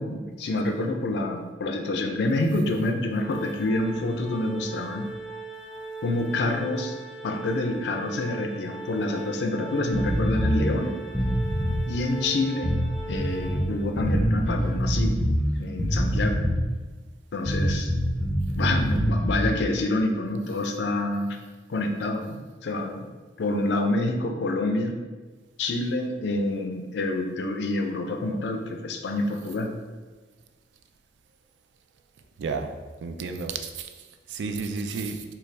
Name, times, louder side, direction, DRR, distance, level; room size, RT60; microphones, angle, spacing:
voice 1, 0.0-5.1 6.0-6.9 7.2-11.0 11.9-12.8 13.1-15.2 15.6-16.5 17.3-17.9 18.6-21.4 21.7-23.1 23.4-25.0 25.6-29.7, left 2 dB, 65° left, 4 dB, 0.4 m, -27 dB
Organ, 3.2-14.1, right 3 dB, 30° right, 1.0 m, -39 dB
sound 1, 9.9-10.6 11.1-11.8 12.6-13.6 14.0-15.4 15.8-16.7 17.5-19.5, equal, 5° left, 0.5 m, -25 dB
voice 2, 32.4-32.7 33.0-33.9 34.3-35.2, right 4 dB, 70° right, 6 dB, 0.3 m, -31 dB
3.9 x 2.3 x 3.2 m, 1.3 s
head